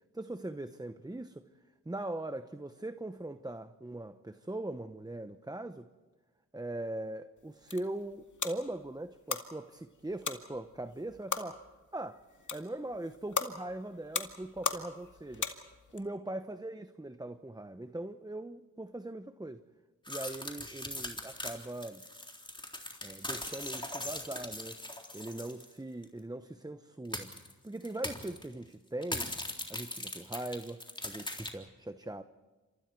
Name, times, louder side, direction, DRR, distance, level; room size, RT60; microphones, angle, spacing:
voice 1, 0.1-1.4 1.9-5.9 6.5-11.6 11.9-12.2 12.5-15.5 15.9-19.6 20.1-22.0 23.0-24.8 25.1-27.3 27.6-29.3 29.7-32.2, right 1 dB, 10° right, 9 dB, 0.9 m, -40 dB
sound 1, 7.4-16.0, left 5 dB, 70° left, 2.2 m, -40 dB
sound 2, 20.1-25.7 26.0-26.1 27.1-27.5 27.8-28.4 29.0-31.5, left 1 dB, 15° left, 3.7 m, -40 dB
29.0 x 27.0 x 4.6 m, 1.3 s
wide cardioid pair, 70°, 31 cm